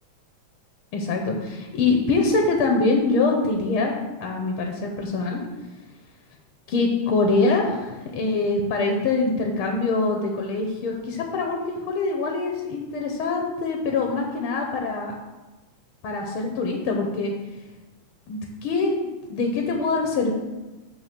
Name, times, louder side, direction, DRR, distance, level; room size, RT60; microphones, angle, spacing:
voice 1, 0.9-3.9 4.2-5.4 6.7-15.1 16.0-17.3 18.3-20.3, left 3 dB, 65° left, 2 dB, 1.4 m, -24 dB
9.6 x 3.5 x 6.7 m, 1.1 s
omnidirectional pair, 3.3 m